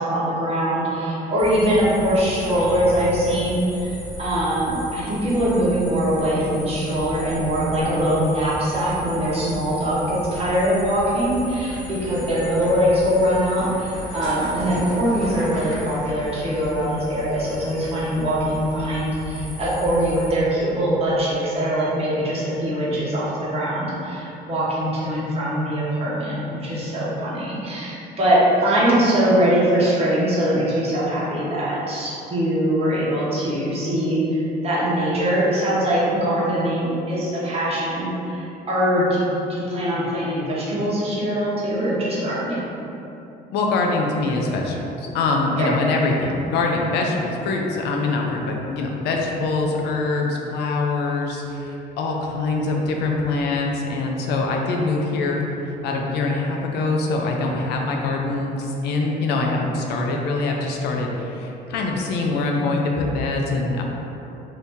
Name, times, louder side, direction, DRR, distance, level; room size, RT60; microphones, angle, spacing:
voice 1, 0.0-39.2 39.5-42.7 45.6-45.7, equal, 35° right, -8 dB, 1.0 m, -22 dB
sound 1, 1.4-20.3, left 1 dB, 20° left, 1.3 m, -36 dB
voice 2, 43.5-55.4 55.8-63.8, left 3 dB, 80° left, 0 dB, 0.5 m, -24 dB
2.8 x 2.7 x 3.5 m, 2.9 s
cardioid pair, 110°, 17 cm